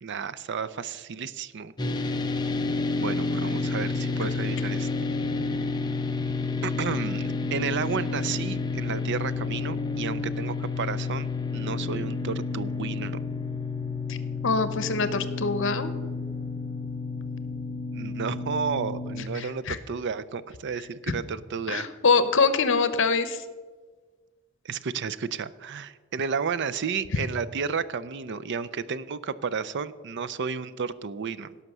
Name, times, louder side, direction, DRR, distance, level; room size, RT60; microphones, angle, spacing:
voice 1, 0.0-1.7 3.0-5.1 6.6-13.2 17.9-21.9 24.6-31.6, right 6 dB, 60° right, 15 dB, 0.5 m, -32 dB
sound 1, 1.8-19.2, left 3 dB, 20° left, 0.9 m, -30 dB
voice 2, 14.4-15.9 19.3-19.8 21.7-23.4, left 4 dB, 65° left, 12 dB, 0.9 m, -24 dB
17.0 x 5.9 x 6.7 m, 1.5 s
head